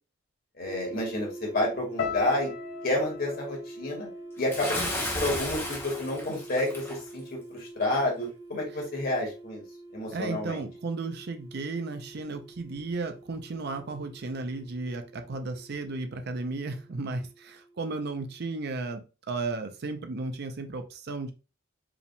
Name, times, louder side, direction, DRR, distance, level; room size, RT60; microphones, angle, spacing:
voice 1, 0.6-2.5 2.8-4.1 4.4-4.8 5.1-7.2 7.5-9.6 9.9-10.6, left 1 dB, 50° left, -1 dB, 1.7 m, -29 dB
sound 1, 0.6-18.6, right 2 dB, 20° right, 0.9 m, -46 dB
sound 2, 2.0-6.2 6.4-7.2 7.8-8.0, left 7 dB, 75° left, 1.0 m, -41 dB
Bathtub (filling or washing) / Splash splatter, 4.5-7.0, left 1 dB, 10° left, 0.8 m, -33 dB
voice 2, 10.1-21.3, right 3 dB, 55° right, 7 dB, 0.5 m, -34 dB
4.8 x 3.4 x 2.2 m, 0.32 s
head